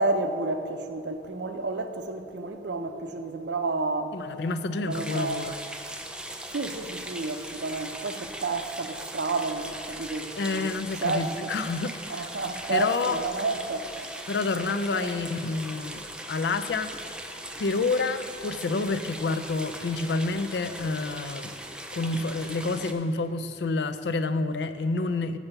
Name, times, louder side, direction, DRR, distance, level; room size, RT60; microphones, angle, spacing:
voice 1, 0.0-4.2 4.8-5.5 6.5-10.7 11.0-11.5 12.1-13.9 14.9-15.1, right 3 dB, 75° right, 0.6 m, -30 dB
voice 2, 4.1-5.5 10.4-12.3 12.7-13.2 14.3-16.0 16.3-16.9 17.6-21.6 21.9-25.4, left 3 dB, 70° left, 0.4 m, -28 dB
sound 1, 4.9-22.9, right 1 dB, 5° right, 0.4 m, -39 dB
7.1 x 5.7 x 6.7 m
head